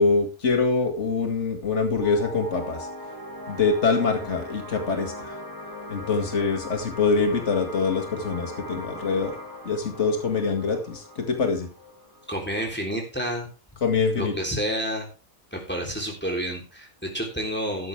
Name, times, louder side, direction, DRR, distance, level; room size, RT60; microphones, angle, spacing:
voice 1, 0.0-2.9 3.5-5.3 5.9-9.3 9.6-11.7 13.8-14.4, left 4 dB, 70° left, 5 dB, 2.4 m, -24 dB
sound 1, 2.0-13.0, left 1 dB, 15° right, 2.3 m, -40 dB
voice 2, 12.3-13.5 14.1-15.1 15.5-17.9, equal, 10° left, 1 dB, 3.4 m, -29 dB
13.0 x 10.5 x 3.4 m, 0.31 s
omnidirectional pair, 1.2 m